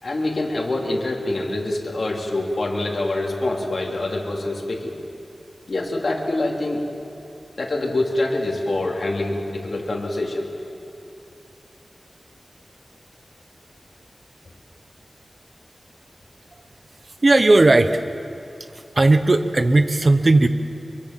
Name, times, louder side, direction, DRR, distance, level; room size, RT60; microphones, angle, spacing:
voice 1, 0.0-4.9 5.7-6.8 7.6-10.5, left 2 dB, 60° left, -1 dB, 3.6 m, -25 dB
voice 2, 17.2-18.0 18.9-20.5, right 2 dB, 45° right, 9 dB, 1.2 m, -16 dB
25.5 x 23.5 x 7.6 m, 2.7 s
wide cardioid pair, 85°, 0 cm